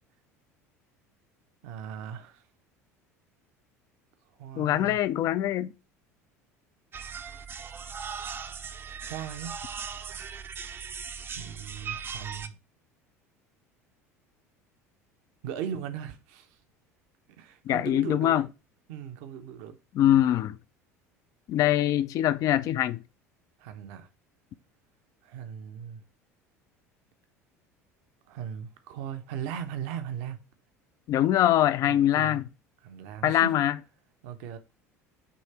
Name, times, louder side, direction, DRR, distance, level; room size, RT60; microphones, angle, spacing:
voice 1, 1.6-2.4 4.4-5.0 9.0-9.6 11.3-12.6 15.4-16.6 17.3-18.4 18.9-19.8 23.6-24.1 25.2-26.0 28.3-30.4 31.8-32.4 32.8-33.5 34.2-34.6, right 8 dB, 55° right, 0.8 m, -38 dB
voice 2, 4.6-5.7 17.7-18.5 19.9-20.6 21.5-23.0 31.1-32.5 33.2-33.8, left 12 dB, 45° left, 0.5 m, -23 dB
sound 1, 6.9-12.5, right 6 dB, 25° right, 0.6 m, -39 dB
8.5 x 3.2 x 4.3 m
figure-of-eight pair, 65°, 8 cm